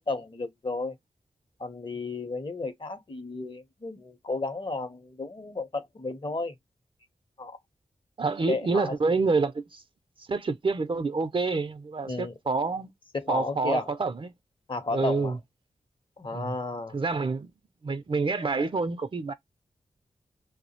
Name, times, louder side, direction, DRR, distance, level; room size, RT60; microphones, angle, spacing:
voice 1, 0.1-1.0 1.6-6.6 7.4-7.6 8.5-9.0 12.0-12.3 13.1-13.9 14.7-15.4 16.2-17.0, left 3 dB, 40° left, 0.8 m, -33 dB
voice 2, 8.2-9.8 10.3-12.9 13.3-14.2 14.9-15.4 16.3-16.5 16.9-17.5 17.8-19.3, right 4 dB, 45° right, 0.5 m, -27 dB
2.3 x 2.0 x 2.7 m
cardioid pair, 45°, 13 cm